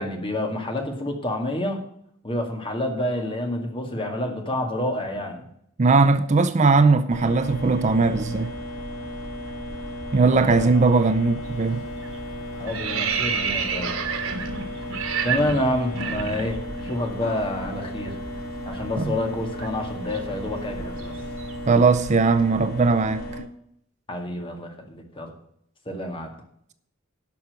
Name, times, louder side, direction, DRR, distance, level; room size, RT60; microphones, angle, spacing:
voice 1, 0.0-1.8 2.2-5.5 10.3-10.7 12.6-14.0 15.2-18.1 18.7-21.1 24.1-25.3 25.9-26.3, left 1 dB, 25° left, 2.0 m, -28 dB
voice 2, 5.8-8.5 10.1-11.9 19.0-19.1 21.7-23.2, right 4 dB, 35° right, 0.5 m, -19 dB
sound 1, 7.1-23.4, equal, 85° left, 2.3 m, -34 dB
sound 2, 11.4-11.7 12.0-17.0 17.2-17.4 17.7-21.8, right 6 dB, 90° right, 1.7 m, -31 dB
11.5 x 5.9 x 8.0 m
head